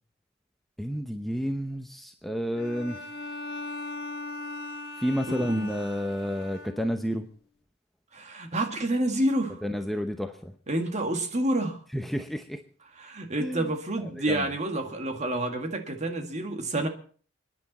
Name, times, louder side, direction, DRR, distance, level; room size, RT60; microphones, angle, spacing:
voice 1, 0.8-3.0 5.0-7.3 9.6-10.5 11.9-12.6 13.4-13.7 14.0-14.5, equal, ahead, 5 dB, 0.8 m, -30 dB
Bowed string instrument, 2.6-7.2, left 2 dB, 55° left, 2.1 m, -39 dB
voice 2, 5.3-5.7 8.1-9.6 10.7-11.8 13.0-16.9, right 1 dB, 35° right, 5 dB, 2.0 m, -29 dB
29.5 x 10.5 x 4.2 m, 0.43 s
head